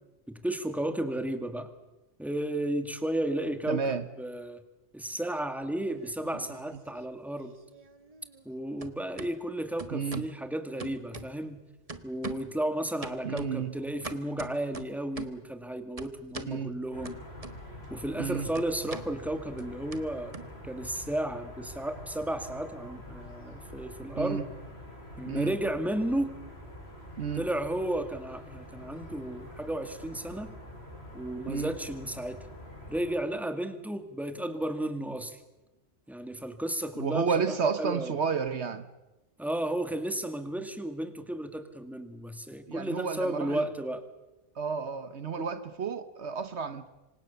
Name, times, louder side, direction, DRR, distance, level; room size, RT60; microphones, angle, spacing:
voice 1, 0.3-1.7 2.2-4.6 4.9-7.5 8.5-11.6 12.0-17.2 17.9-20.3 20.6-24.5 25.2-26.3 27.3-30.5 31.1-32.4 32.9-35.4 36.1-38.1 39.4-44.0, right 1 dB, ahead, 2.0 m, -33 dB
voice 2, 3.7-4.1 6.3-6.4 9.9-10.3 13.2-13.7 16.5-16.8 18.2-18.5 24.2-24.4 25.2-25.5 27.2-27.4 31.5-31.7 36.9-38.9 42.7-43.6 44.6-46.9, right 5 dB, 65° right, 1.3 m, -31 dB
sound 1, 5.7-6.6 6.9-8.5 8.8-9.3 9.8-10.4 10.8-11.6 11.9-12.6 13.0-15.5 16.0-16.6 17.0-17.9 18.1-21.0, right 3 dB, 30° right, 1.4 m, -43 dB
sound 2, 16.9-33.1, left 1 dB, 55° left, 6.9 m, -46 dB
26.5 x 25.0 x 7.0 m
omnidirectional pair, 1.2 m